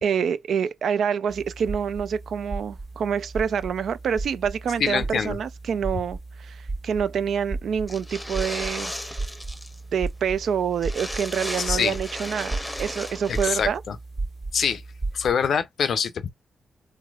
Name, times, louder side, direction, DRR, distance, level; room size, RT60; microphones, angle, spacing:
voice 1, 0.0-8.9 9.9-13.8, right 7 dB, 75° right, 0.3 m, -27 dB
sound 1, 1.3-15.3, right 3 dB, 45° right, 1.3 m, -35 dB
voice 2, 4.8-5.4 11.6-12.0 13.3-14.0 14.5-14.8 15.1-16.3, left 7 dB, 70° left, 0.5 m, -25 dB
sound 2, 7.9-9.8 10.1-10.2 10.4-10.5 10.8-13.5, left 1 dB, 10° left, 0.7 m, -35 dB
3.2 x 3.1 x 2.4 m
cardioid pair, 65°, 0 cm